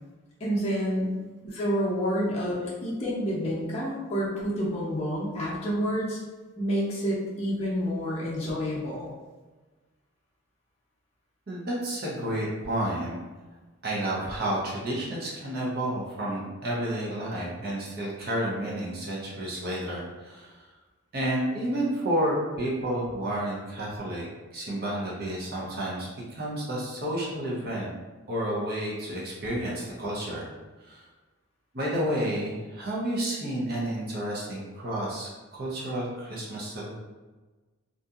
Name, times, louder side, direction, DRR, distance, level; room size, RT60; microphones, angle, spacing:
voice 1, 0.4-1.2 1.4-6.2 6.6-9.1, equal, 30° left, -8 dB, 0.6 m, -28 dB
voice 2, 11.5-13.2 13.8-20.6 21.1-24.3 24.5-27.9 28.3-30.5 30.8-31.0 31.7-36.9, right 1 dB, 45° right, -4 dB, 0.6 m, -31 dB
2.7 x 2.5 x 2.3 m, 1.2 s
head